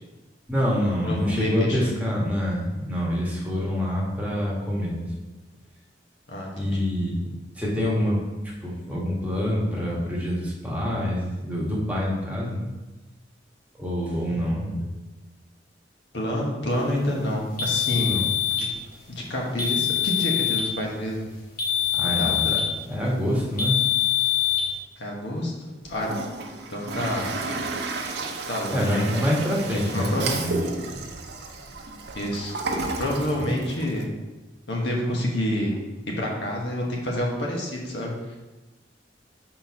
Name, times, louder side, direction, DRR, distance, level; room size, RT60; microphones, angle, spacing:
voice 1, 0.5-5.1 6.6-8.2 8.6-12.7 13.8-14.8 18.1-18.2 21.9-23.8 28.7-30.6 33.4-33.5, equal, 10° right, -4 dB, 1.3 m, -26 dB
voice 2, 1.0-1.9 6.3-6.8 14.3-14.7 16.1-18.2 18.6-18.7 19.1-21.3 22.0-22.5 25.0-26.1 26.7-27.3 28.5-29.0 29.9-30.4 32.1-32.6 33.0-34.0 34.7-35.8 36.1-38.4, left 1 dB, 75° left, -1 dB, 1.2 m, -28 dB
sound 1, 17.6-18.7 19.6-20.7 21.6-22.7 23.6-24.7, left 10 dB, 55° left, 1.1 m, -24 dB
Toilet flush, 25.8-34.0, right 3 dB, 65° right, 0.6 m, -32 dB
4.4 x 3.9 x 5.6 m, 1.1 s
head